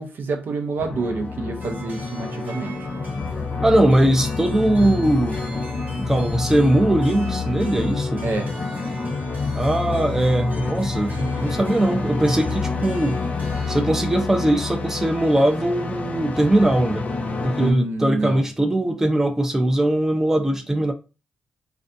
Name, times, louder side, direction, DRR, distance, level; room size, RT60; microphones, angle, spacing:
voice 1, 0.0-2.8 8.2-8.5 17.6-18.5, right 3 dB, 70° right, 0.5 m, -27 dB
Swelling Deep Bass and Pads, 0.8-17.7, left 4 dB, 40° left, 0.5 m, -28 dB
sound 1, 1.6-13.8, right 1 dB, 45° right, 1.0 m, -43 dB
voice 2, 3.6-5.4 6.0-8.2 9.5-13.2 13.7-17.1 17.4-20.9, right 1 dB, 10° right, 0.5 m, -20 dB
2.5 x 2.2 x 2.5 m
cardioid pair, 80°, 4 cm